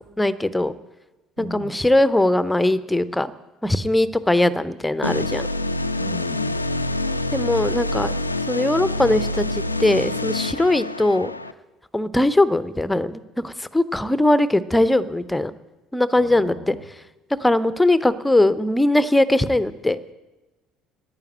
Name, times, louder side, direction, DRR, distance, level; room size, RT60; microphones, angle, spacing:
voice 1, 0.2-0.7 1.4-3.3 3.6-5.5 7.3-8.1 8.5-11.3 11.9-15.5 15.9-16.8 17.4-20.0, left 1 dB, 10° left, 15 dB, 0.7 m, -20 dB
voice 2, 1.4-1.7 6.0-6.5 16.2-16.8, equal, 70° right, -4 dB, 3.4 m, -37 dB
sound 1, 5.0-11.5, left 2 dB, 85° left, 0.3 m, -26 dB
10.5 x 9.1 x 8.9 m, 1.1 s
figure-of-eight pair, 55°, 0 cm